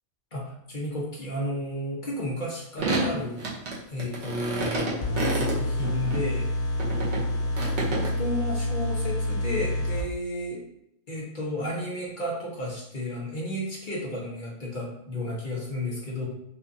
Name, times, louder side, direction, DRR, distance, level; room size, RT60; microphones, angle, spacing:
voice 1, 0.3-3.4 3.9-6.5 7.7-10.6 11.1-16.3, left 1 dB, 40° left, -4 dB, 1.1 m, -32 dB
sound 1, 2.8-6.2 6.8-8.1, right 2 dB, 55° right, 1.2 m, -29 dB
sound 2, 5.0-10.0, left 1 dB, 65° left, 1.1 m, -28 dB
5.7 x 2.5 x 2.7 m, 0.79 s
omnidirectional pair, 1.4 m